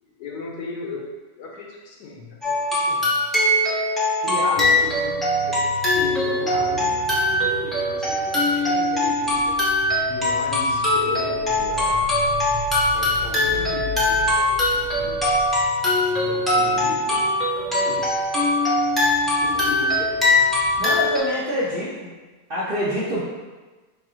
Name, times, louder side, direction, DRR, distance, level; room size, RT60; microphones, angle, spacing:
voice 1, 0.0-3.1 4.2-9.6 10.1-12.2 12.9-15.2 15.9-17.2 17.5-18.2 19.4-20.3, left 3 dB, 85° left, -1 dB, 1.3 m, -36 dB
sound 1, 2.4-21.2, left 1 dB, ahead, 0.3 m, -21 dB
voice 2, 4.3-4.7 20.8-22.1 22.5-23.2, equal, 55° right, -8 dB, 0.6 m, -26 dB
sound 2, 4.6-21.3, right 2 dB, 75° right, 1.0 m, -41 dB
sound 3, 9.2-15.7, left 4 dB, 65° left, 1.0 m, -38 dB
3.2 x 2.7 x 3.8 m, 1.3 s
omnidirectional pair, 1.7 m